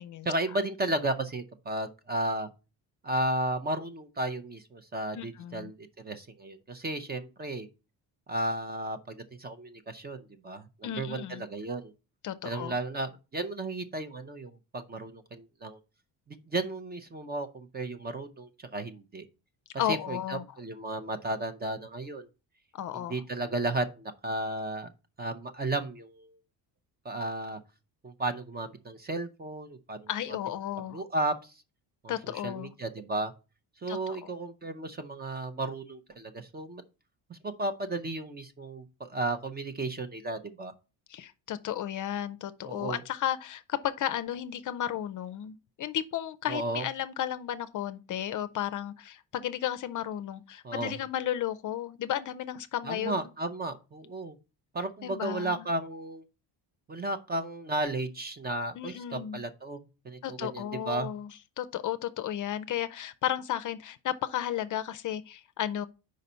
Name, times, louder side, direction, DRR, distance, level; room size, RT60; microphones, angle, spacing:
voice 1, 0.2-2.5 3.0-7.7 8.3-11.9 12.4-15.8 16.3-19.3 19.9-22.3 22.9-24.9 25.2-26.4 27.0-27.6 28.0-30.4 30.9-31.5 32.0-32.1 32.4-33.3 33.8-36.8 37.3-40.7 42.7-43.0 46.5-46.9 50.6-51.0 52.8-54.4 54.7-56.2 56.9-61.1, right 2 dB, 25° right, 0.5 m, -34 dB
voice 2, 5.1-5.7 10.8-11.4 12.2-12.7 19.8-20.4 22.7-23.2 30.1-31.0 32.1-32.7 33.9-34.3 41.1-53.3 55.0-55.7 58.8-59.4 60.2-61.3 61.6-65.9, left 11 dB, 45° left, 0.5 m, -34 dB
5.1 x 4.0 x 5.4 m
cardioid pair, 145°, 43 cm